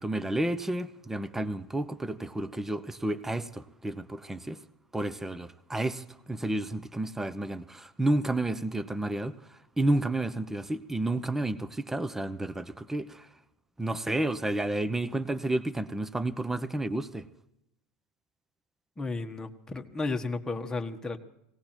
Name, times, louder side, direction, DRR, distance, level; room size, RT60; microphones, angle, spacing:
voice 1, 0.0-4.6 4.9-9.3 9.8-13.3 13.8-17.2, right 1 dB, 10° right, 0.9 m, -31 dB
voice 2, 19.0-21.2, left 3 dB, 15° left, 1.6 m, -33 dB
18.0 x 17.5 x 4.5 m
supercardioid pair, 100°, 4 cm